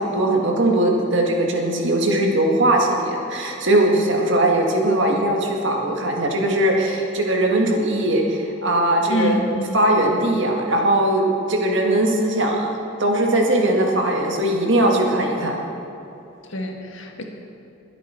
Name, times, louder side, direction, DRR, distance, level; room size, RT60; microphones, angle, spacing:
voice 1, 0.0-9.4 9.7-15.6, right 1 dB, 65° right, 0 dB, 1.8 m, -20 dB
voice 2, 9.1-9.8 16.4-17.2, left 1 dB, 70° left, 2 dB, 1.6 m, -26 dB
21.5 x 8.2 x 4.5 m, 2.9 s
head